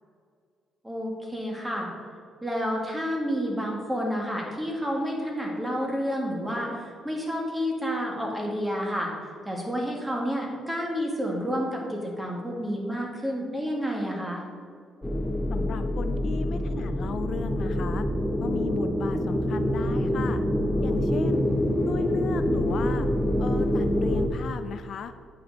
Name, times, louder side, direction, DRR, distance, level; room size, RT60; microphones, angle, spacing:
voice 1, 0.8-1.9 2.4-9.1 9.5-14.4, equal, 10° right, -1 dB, 2.0 m, -30 dB
sound 1, 15.0-24.3, left 1 dB, 10° left, 0.8 m, -26 dB
voice 2, 15.5-18.0 18.4-20.4 20.8-21.5 21.9-23.1 23.4-25.1, left 7 dB, 60° left, 10 dB, 0.4 m, -36 dB
8.7 x 5.9 x 4.1 m, 2.2 s
cardioid pair, 90°, 0 cm